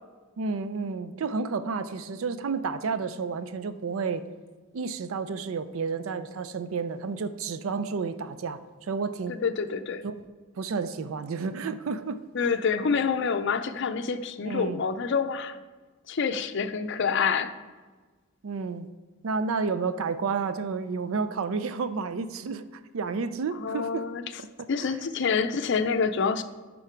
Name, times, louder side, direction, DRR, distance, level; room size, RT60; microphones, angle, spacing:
voice 1, 0.4-4.2 4.7-9.4 10.0-10.2 10.6-12.2 14.4-14.8 18.4-18.9 19.2-24.1 24.4-24.5 24.8-25.0, right 5 dB, 70° right, 12 dB, 0.4 m, -31 dB
voice 2, 9.3-10.0 12.3-15.6 16.1-17.5 23.6-24.2 24.7-26.4, left 5 dB, 55° left, 10 dB, 0.5 m, -27 dB
10.5 x 3.8 x 4.5 m, 1.3 s
head